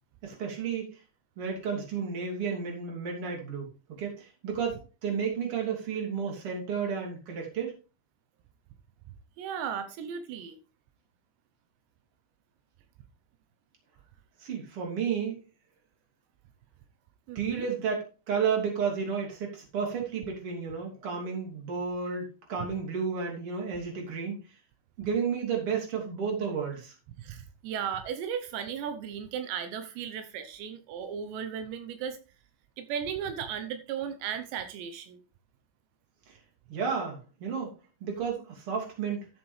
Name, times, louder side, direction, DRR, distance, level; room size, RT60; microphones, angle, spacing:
voice 1, 0.2-1.0 1.4-3.7 4.0-7.7 14.4-15.4 17.3-24.4 25.0-26.9 36.3-36.4 36.7-37.7 38.0-39.3, right 6 dB, 35° right, 0 dB, 3.2 m, -32 dB
voice 2, 9.4-10.6 17.3-17.7 27.2-32.2 32.8-35.2, right 8 dB, 80° right, 9 dB, 3.0 m, -36 dB
13.5 x 7.6 x 3.3 m, 0.33 s
omnidirectional pair, 5.0 m